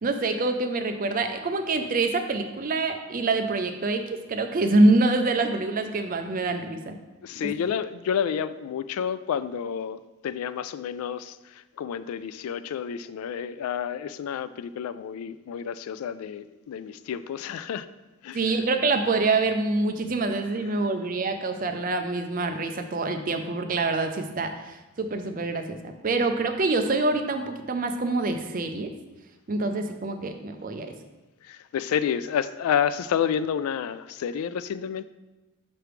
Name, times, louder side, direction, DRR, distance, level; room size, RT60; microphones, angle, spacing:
voice 1, 0.0-7.0 18.3-28.9 29.5-30.9, right 2 dB, 40° right, 6 dB, 0.5 m, -25 dB
voice 2, 7.2-17.9 18.2-18.6 31.4-35.0, left 8 dB, 85° left, 15 dB, 0.3 m, -30 dB
6.0 x 3.2 x 4.9 m, 1.1 s
head